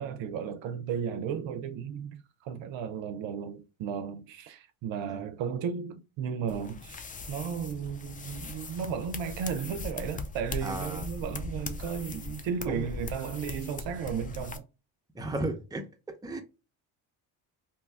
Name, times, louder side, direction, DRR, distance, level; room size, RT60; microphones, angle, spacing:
voice 1, 0.0-7.0 7.3-14.6, right 7 dB, 65° right, 0.6 m, -34 dB
sound 1, 6.5-14.6, left 3 dB, 20° left, 0.3 m, -40 dB
voice 2, 10.6-11.0 12.7-12.9 15.1-15.9 16.2-16.4, right 2 dB, 10° right, 0.7 m, -34 dB
2.9 x 2.2 x 3.4 m
supercardioid pair, 65°, 50 cm